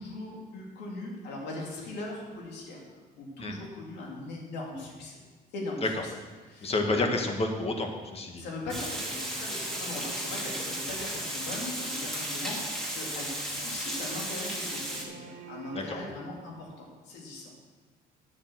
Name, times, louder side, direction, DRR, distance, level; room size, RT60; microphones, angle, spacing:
voice 1, 0.0-2.8 3.1-5.2 5.5-5.9 6.5-7.0 8.4-17.5, left 2 dB, 85° left, -2 dB, 2.9 m, -40 dB
voice 2, 6.6-8.4 15.7-16.1, left 2 dB, 35° left, 3 dB, 1.7 m, -30 dB
Water, 8.7-15.0, right 1 dB, ahead, 2.3 m, -35 dB
sound 1, 9.1-16.8, right 4 dB, 55° right, 1.8 m, -49 dB
11.0 x 6.8 x 6.4 m, 1.4 s
cardioid pair, 110°, 17 cm